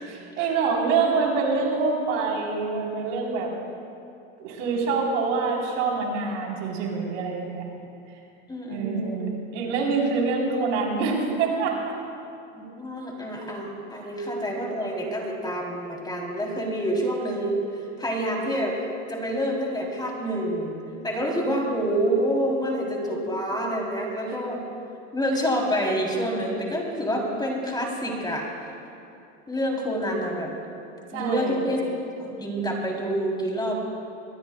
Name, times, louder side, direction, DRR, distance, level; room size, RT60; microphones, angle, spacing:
voice 1, 0.1-3.5 4.4-7.6 8.7-12.0 31.1-31.7, right 4 dB, 80° right, -1 dB, 3.8 m, -26 dB
voice 2, 8.5-9.3 12.5-17.7 18.0-18.8 19.1-20.8 21.0-24.6 25.1-28.5 29.5-30.5 31.1-31.8 32.2-33.7, equal, 10° left, -1 dB, 3.3 m, -27 dB
22.0 x 20.5 x 2.3 m, 2.6 s
supercardioid pair, 110°, 37 cm